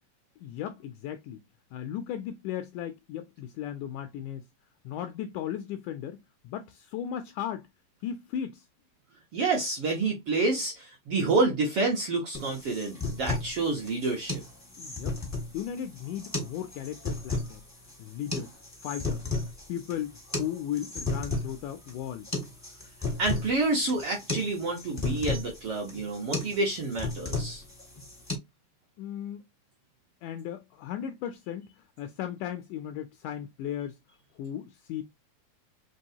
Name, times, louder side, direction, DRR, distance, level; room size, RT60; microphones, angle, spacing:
voice 1, 0.4-1.4 1.7-4.5 4.9-6.2 6.4-7.7 8.0-8.7 14.8-15.2 15.5-17.6 18.0-18.6 18.8-19.2 19.7-22.3 29.0-29.4 30.2-34.0 34.4-35.0, left 10 dB, 85° left, 1.8 m, -36 dB
voice 2, 9.3-14.4 23.2-27.6, right 3 dB, 60° right, 1.5 m, -28 dB
sound 1, 12.3-28.3, left 2 dB, 15° left, 0.5 m, -34 dB
5.3 x 3.0 x 2.7 m
omnidirectional pair, 4.0 m